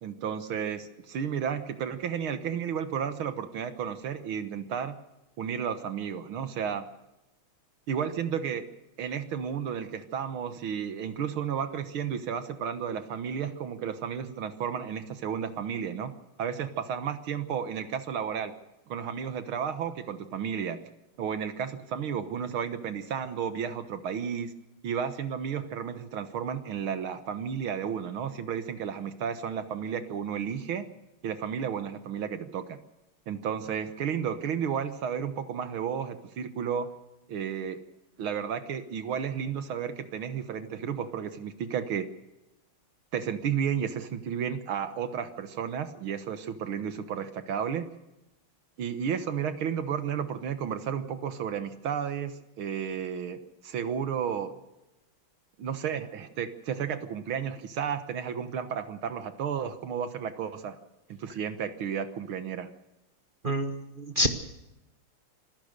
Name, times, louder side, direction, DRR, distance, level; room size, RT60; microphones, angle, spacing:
voice 1, 0.0-5.0 5.4-6.9 7.9-8.6 9.0-16.1 16.4-18.5 18.9-20.8 21.2-24.5 24.8-30.9 31.2-32.8 33.3-36.9 37.3-37.8 38.2-42.1 43.1-47.9 48.8-54.5 55.6-60.8 61.1-62.7, right 7 dB, 75° right, 10 dB, 2.1 m, -32 dB
voice 2, 63.4-64.3, equal, 30° right, 5 dB, 1.3 m, -27 dB
26.5 x 15.5 x 6.7 m, 0.95 s
omnidirectional pair, 2.3 m